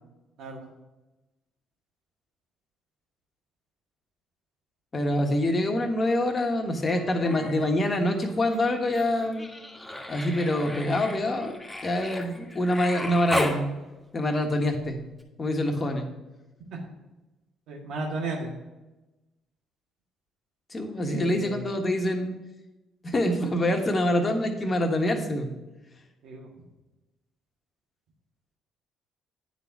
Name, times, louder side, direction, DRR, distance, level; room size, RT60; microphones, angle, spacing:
voice 1, 4.9-9.5 10.1-13.7 14.1-15.0 15.4-16.1 20.7-22.4 23.0-25.5, left 1 dB, 35° left, 4 dB, 1.4 m, -25 dB
Human voice, 6.9-7.7 8.0-13.6 15.2-15.3, left 1 dB, 5° left, 1.7 m, -35 dB
voice 2, 17.7-18.5 21.0-21.7 26.2-26.5, right 2 dB, 70° right, 0 dB, 1.7 m, -34 dB
9.6 x 4.0 x 5.9 m, 1.1 s
hypercardioid pair, 55°, 0 cm